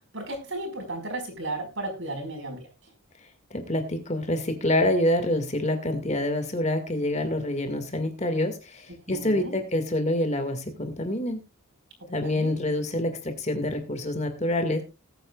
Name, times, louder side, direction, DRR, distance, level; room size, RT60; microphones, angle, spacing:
voice 1, 0.1-2.7 9.1-9.6 12.2-12.5, right 2 dB, 60° right, 5 dB, 4.9 m, -34 dB
voice 2, 3.5-11.4 12.1-14.8, left 1 dB, 30° left, 7 dB, 2.0 m, -26 dB
20.0 x 9.0 x 2.4 m, 0.26 s
head